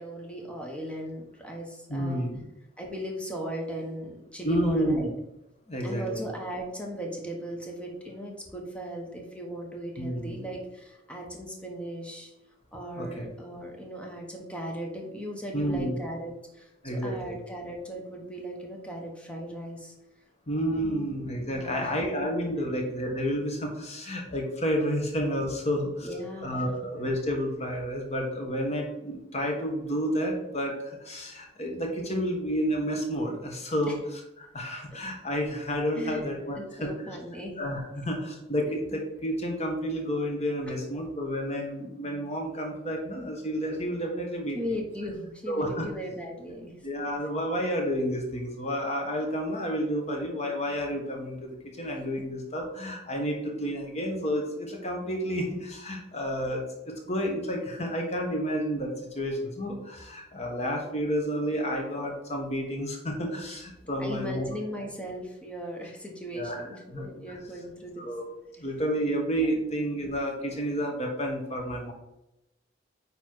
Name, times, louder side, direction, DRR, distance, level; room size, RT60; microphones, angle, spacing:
voice 1, 0.0-2.3 2.8-5.1 5.8-12.3 12.7-19.9 20.7-21.0 21.5-21.9 22.2-22.3 25.7-26.5 35.9-37.6 44.5-46.7 64.0-68.1 69.7-69.8, equal, 5° left, 0 dB, 1.3 m, -37 dB
voice 2, 1.9-2.4 4.4-5.1 5.7-6.2 10.0-10.3 13.0-13.2 15.5-16.0 16.8-17.4 20.5-26.1 26.4-36.9 37.6-44.6 45.5-45.9 46.8-64.5 66.3-66.6 66.9-67.4 68.0-68.2 68.6-71.9, equal, 35° left, 1 dB, 1.4 m, -30 dB
9.5 x 3.4 x 4.6 m, 0.91 s
head